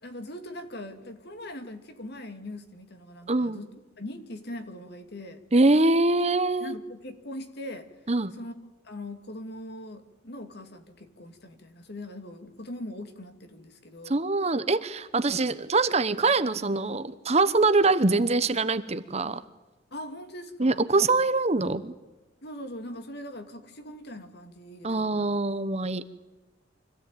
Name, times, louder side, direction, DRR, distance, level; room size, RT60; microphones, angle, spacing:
voice 1, 0.0-3.7 4.0-5.4 6.6-7.9 8.4-8.5 8.8-14.2 19.9-20.8 22.4-25.4, left 1 dB, 55° left, 7 dB, 2.3 m, -41 dB
voice 2, 3.3-3.6 5.5-6.7 8.1-8.3 14.1-19.4 20.6-21.9 24.8-26.1, right 3 dB, 35° right, 13 dB, 0.9 m, -24 dB
25.5 x 16.0 x 9.1 m, 1.1 s
head